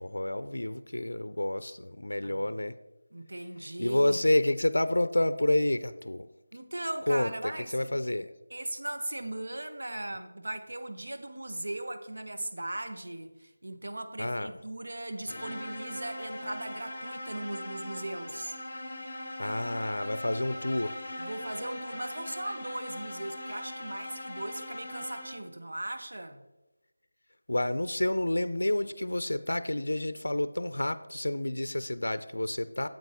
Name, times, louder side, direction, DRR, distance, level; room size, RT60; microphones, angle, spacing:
voice 1, 0.0-2.8 3.6-6.3 7.1-8.3 14.2-14.5 19.4-21.0 27.5-32.9, left 1 dB, 90° left, 13 dB, 0.5 m, -29 dB
voice 2, 3.1-4.2 6.5-8.0 8.5-18.6 21.2-26.4, right 1 dB, 80° right, 7 dB, 1.1 m, -38 dB
sound 1, 15.3-25.6, left 1 dB, 30° left, 3.1 m, -41 dB
8.9 x 7.9 x 3.5 m, 0.98 s
figure-of-eight pair, 170°, 0 cm